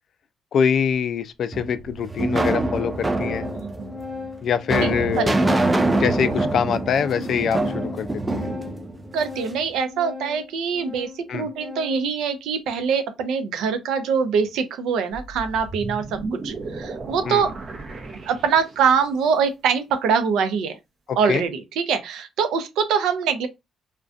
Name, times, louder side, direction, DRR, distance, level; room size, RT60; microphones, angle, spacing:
voice 1, 0.5-3.5 4.4-5.4 6.0-8.5 11.3-11.5 17.3-17.5 21.1-21.4, left 7 dB, 60° left, 0.3 m, -24 dB
Organ, 0.9-1.0 1.8-1.9 2.3-12.2, left 4 dB, 5° left, 1.0 m, -38 dB
sound 1, 1.5-9.6, right 2 dB, 20° right, 0.4 m, -25 dB
voice 2, 3.5-3.9 4.8-4.9 5.2-5.6 9.1-17.5 18.0-20.8 21.2-23.5, right 6 dB, 85° right, 0.5 m, -24 dB
sound 2, 15.1-19.1, right 3 dB, 50° right, 0.7 m, -35 dB
2.4 x 2.2 x 2.5 m
cardioid pair, 90°, 0 cm